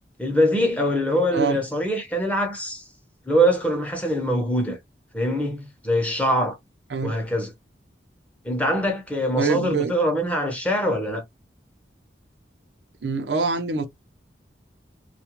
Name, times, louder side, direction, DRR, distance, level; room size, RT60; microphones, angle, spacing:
voice 1, 0.2-2.8 3.3-4.8 5.1-6.6 7.0-7.5 8.4-11.2, equal, 10° left, 0.8 m, -23 dB
voice 2, 9.4-9.9 13.0-13.9, right 4 dB, 75° right, 0.6 m, -24 dB
2.4 x 2.2 x 2.9 m
head